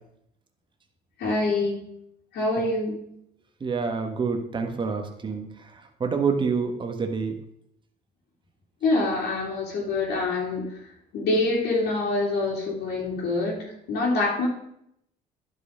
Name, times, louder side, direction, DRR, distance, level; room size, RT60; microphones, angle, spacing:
voice 1, 1.2-1.8 2.3-3.0 8.8-10.6 11.1-14.5, left 2 dB, 75° left, -7 dB, 2.8 m, -25 dB
voice 2, 3.6-7.4, right 5 dB, 30° right, 4 dB, 1.5 m, -27 dB
11.0 x 5.5 x 5.1 m, 0.74 s
cardioid pair, 110°, 17 cm